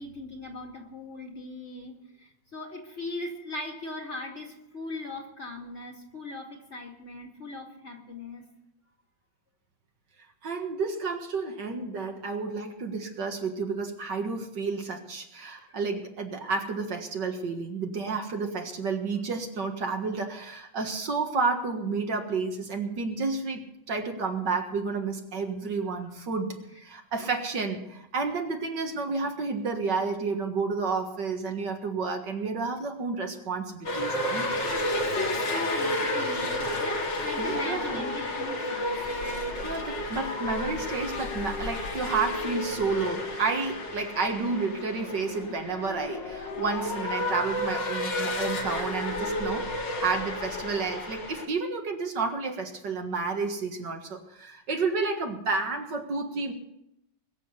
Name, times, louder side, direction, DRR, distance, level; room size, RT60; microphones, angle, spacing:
voice 1, 0.0-8.5 15.6-15.8 34.6-39.0, left 2 dB, 35° left, 1 dB, 2.5 m, -39 dB
voice 2, 10.4-34.5 37.4-38.0 39.6-56.5, right 4 dB, 60° right, 4 dB, 2.3 m, -31 dB
sound 1, 33.8-51.5, left 1 dB, 60° left, 2.7 m, -31 dB
21.5 x 7.7 x 8.3 m, 0.82 s
omnidirectional pair, 2.2 m